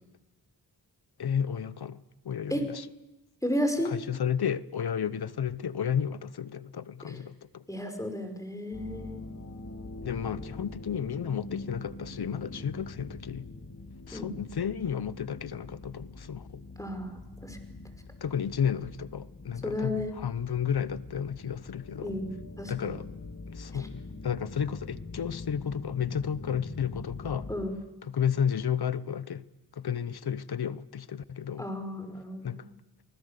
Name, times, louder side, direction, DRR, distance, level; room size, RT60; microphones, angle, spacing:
voice 1, 1.2-2.8 3.8-7.6 10.0-13.5 14.1-16.6 18.2-22.1 22.7-23.1 23.5-27.5 28.0-29.4 29.8-31.7 32.4-32.7, left 8 dB, 70° left, 0.9 m, -32 dB
voice 2, 3.4-3.9 7.1-7.2 7.7-9.2 14.1-14.3 16.8-17.6 19.6-20.1 22.0-23.0 27.5-27.8 31.6-32.6, left 1 dB, 10° left, 5.2 m, -33 dB
sound 1, 8.7-27.6, left 2 dB, 50° left, 2.3 m, -44 dB
29.0 x 19.5 x 6.7 m
cardioid pair, 55°, 40 cm